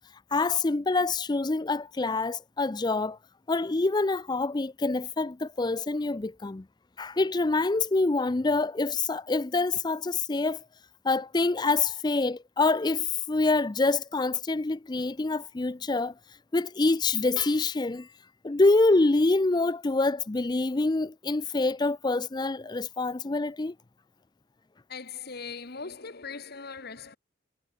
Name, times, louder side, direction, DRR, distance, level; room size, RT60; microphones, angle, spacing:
voice 1, 0.3-3.2 3.5-6.6 7.0-10.6 11.0-16.1 16.5-18.1 18.4-23.7, left 3 dB, 20° left, 0.4 m, -26 dB
voice 2, 24.9-27.2, left 5 dB, 50° left, 1.5 m, -40 dB
head